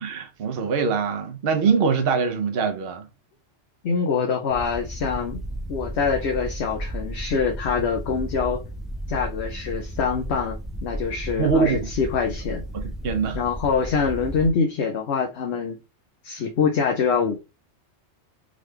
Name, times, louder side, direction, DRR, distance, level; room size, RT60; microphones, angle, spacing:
voice 1, 0.0-3.1 11.4-11.9 12.7-13.4, right 5 dB, 55° right, 0.9 m, -23 dB
voice 2, 3.8-5.4 5.7-8.6 9.1-12.6 13.3-15.8 16.2-17.4, left 5 dB, 70° left, 1.0 m, -25 dB
sound 1, 4.5-14.5, right 1 dB, ahead, 0.9 m, -34 dB
3.8 x 3.3 x 3.2 m
omnidirectional pair, 1.2 m